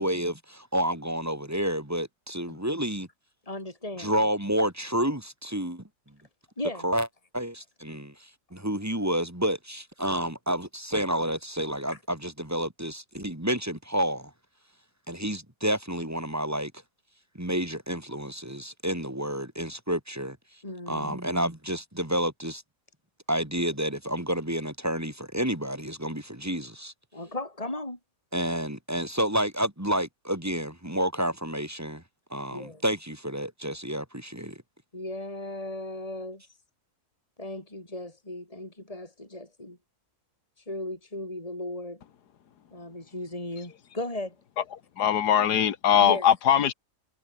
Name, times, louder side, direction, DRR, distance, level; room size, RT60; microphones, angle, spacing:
voice 1, 0.0-3.1 4.0-5.8 6.8-7.1 7.3-8.1 8.5-14.3 15.1-16.7 17.3-20.4 20.9-22.6 23.3-26.9 28.3-32.0 32.3-34.6, equal, 10° right, 2.7 m, -29 dB
voice 2, 3.5-4.1 6.6-6.9 11.9-12.0 20.6-21.2 27.1-28.0 32.5-32.8 34.9-36.4 37.4-39.8 40.7-42.0 42.7-44.3 46.0-46.3, left 1 dB, 20° left, 4.7 m, -36 dB
voice 3, 44.7-46.7, left 9 dB, 85° left, 1.8 m, -21 dB
omnidirectional pair, 1.7 m